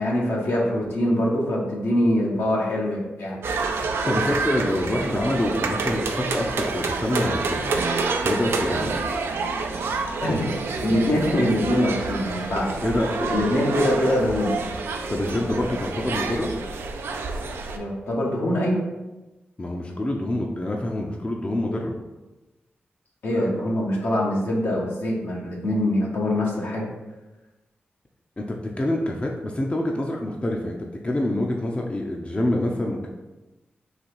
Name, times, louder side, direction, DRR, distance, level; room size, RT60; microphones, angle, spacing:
voice 1, 0.0-3.4 10.2-10.5 10.8-12.8 13.3-14.7 17.7-18.8 23.2-26.9, left 1 dB, 75° left, -3 dB, 1.2 m, -23 dB
sound 1, 3.4-17.8, right 4 dB, 80° right, 0.4 m, -28 dB
voice 2, 4.1-7.7 8.2-8.9 12.8-13.3 15.1-16.5 19.6-21.9 28.4-33.1, left 1 dB, 30° left, 0 dB, 0.6 m, -26 dB
4.0 x 2.8 x 4.6 m, 1.1 s
cardioid pair, 50°, 4 cm